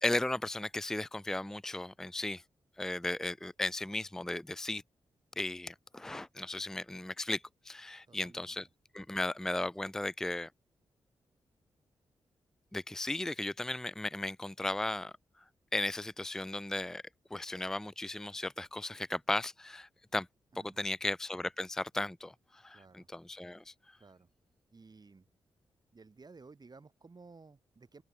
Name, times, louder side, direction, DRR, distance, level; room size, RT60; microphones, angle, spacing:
voice 1, 0.0-2.4 2.8-4.8 5.4-8.7 8.9-10.5 12.7-15.1 15.7-17.0 17.3-20.3 20.8-23.7, left 2 dB, 5° left, 0.4 m, -36 dB
voice 2, 8.1-8.6 20.5-21.0 22.7-23.1 24.0-24.3 24.7-25.3 25.9-28.0, right 4 dB, 40° right, 2.8 m, -56 dB
open air
supercardioid pair, 45°, 10 cm